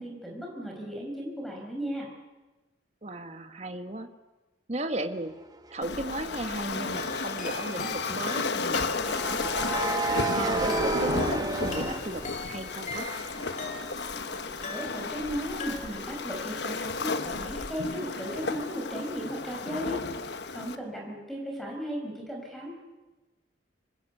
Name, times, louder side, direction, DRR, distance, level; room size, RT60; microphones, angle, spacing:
voice 1, 0.0-2.1 14.6-22.7, equal, ahead, 0 dB, 5.3 m, -36 dB
voice 2, 3.0-4.1 4.7-5.3 5.7-9.5 9.8-13.2, right 1 dB, 40° right, 7 dB, 1.5 m, -36 dB
sound 1, 5.7-5.9 9.0-12.9 13.3-16.9, right 2 dB, 20° right, 1.1 m, -33 dB
Waves surf, 5.8-20.8, left 4 dB, 70° left, 1.2 m, -33 dB
sound 2, 7.0-14.2 14.6-15.3 15.6-16.2, left 3 dB, 40° left, 2.7 m, -41 dB
25.5 x 20.5 x 8.3 m, 1.2 s
head